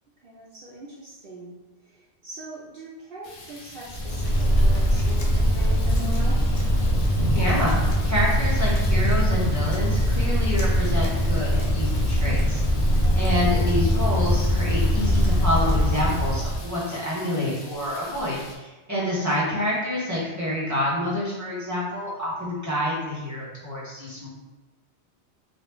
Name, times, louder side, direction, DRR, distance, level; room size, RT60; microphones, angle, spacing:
voice 1, 0.2-1.6 1.9-2.0 2.2-6.4 13.1-13.3, right 2 dB, 60° right, -5 dB, 0.6 m, -40 dB
sound 1, 3.2-18.5, equal, 70° left, 1.0 m, -39 dB
Wind, 3.9-16.7, equal, 55° left, 0.4 m, -22 dB
voice 2, 7.3-7.8 8.0-12.6 13.1-24.3, left 1 dB, 15° right, -7 dB, 0.7 m, -27 dB
3.0 x 2.3 x 3.3 m, 1.2 s
omnidirectional pair, 1.2 m